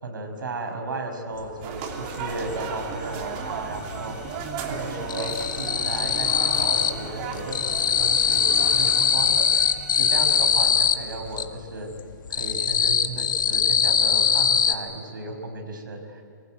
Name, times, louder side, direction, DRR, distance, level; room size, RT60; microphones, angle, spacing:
voice 1, 0.0-4.2 4.7-11.9 12.3-16.2, right 2 dB, 85° right, 5 dB, 5.8 m, -34 dB
sound 1, 1.5-1.6 1.9-3.2 3.4-4.1 4.4-7.1 7.3-11.5 11.9-14.7, left 7 dB, 80° left, 1.9 m, -22 dB
sound 2, 1.6-9.1, right 6 dB, 30° right, 2.9 m, -35 dB
sound 3, 1.8-10.5, equal, 5° right, 4.2 m, -43 dB
24.5 x 22.5 x 9.2 m, 2.4 s
hypercardioid pair, 160°, 11 cm